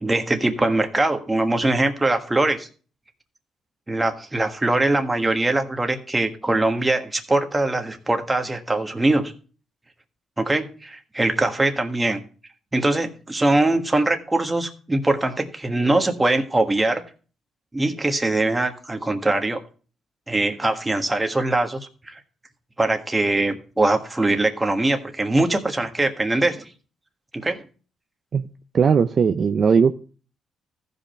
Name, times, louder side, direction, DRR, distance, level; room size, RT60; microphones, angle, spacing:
voice 1, 0.0-2.7 3.9-9.3 10.4-12.2 12.7-17.0 17.7-19.6 20.3-22.2 22.8-26.7 27.3-27.6, right 2 dB, 15° right, 5 dB, 1.4 m, -22 dB
voice 2, 28.7-29.9, right 6 dB, 50° right, 9 dB, 0.5 m, -18 dB
14.5 x 5.3 x 4.3 m, 0.38 s
cardioid pair, 90°, 0 cm